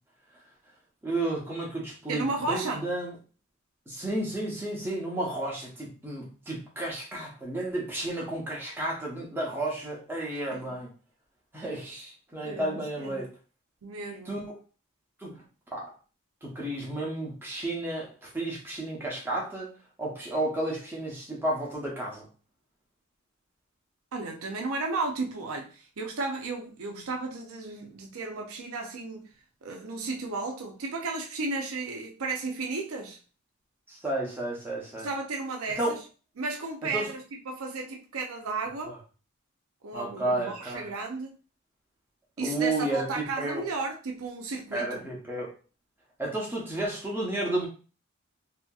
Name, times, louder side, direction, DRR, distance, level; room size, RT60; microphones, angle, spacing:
voice 1, 1.0-3.1 3.9-10.9 11.5-13.3 14.3-14.4 15.2-15.4 15.7-15.9 16.4-19.7 20.0-22.3 33.9-35.1 35.8-35.9 36.9-37.1 38.8-38.9 39.9-40.9 42.4-43.6 44.7-45.5 46.2-47.7, right 1 dB, 10° right, 0.8 m, -32 dB
voice 2, 2.1-2.9 10.3-10.6 12.4-13.2 13.8-14.3 24.1-29.3 29.6-33.2 35.0-36.0 36.4-39.0 39.8-41.4 42.4-45.1, right 3 dB, 75° right, 0.5 m, -34 dB
2.7 x 2.7 x 2.3 m
head